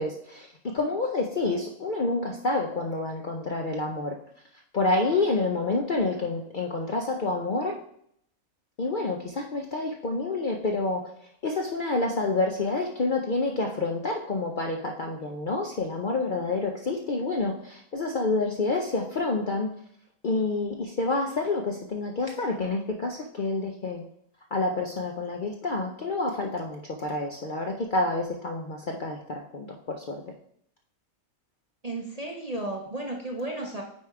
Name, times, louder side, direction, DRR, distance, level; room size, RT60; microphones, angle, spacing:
voice 1, 0.0-4.2 4.7-7.8 8.8-11.1 11.4-19.7 20.2-24.0 24.5-30.3, left 3 dB, 50° left, 1 dB, 0.6 m, -28 dB
voice 2, 31.8-33.8, right 2 dB, 35° right, 1 dB, 0.6 m, -33 dB
8.5 x 3.4 x 4.7 m, 0.68 s
omnidirectional pair, 1.5 m